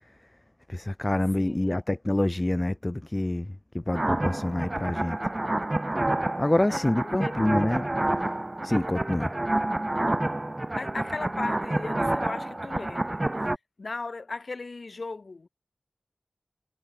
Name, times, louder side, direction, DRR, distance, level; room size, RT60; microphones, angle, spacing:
voice 1, 0.7-5.2 6.4-7.9 8.2-8.3 8.6-9.3, left 1 dB, 25° left, 0.5 m, -27 dB
voice 2, 1.4-1.7 6.7-6.9 7.2-7.4 10.7-13.2 13.8-15.5, left 3 dB, 70° left, 4.3 m, -37 dB
sound 1, 3.9-13.6, right 1 dB, 30° right, 0.9 m, -28 dB
cardioid pair, 45°, 0 cm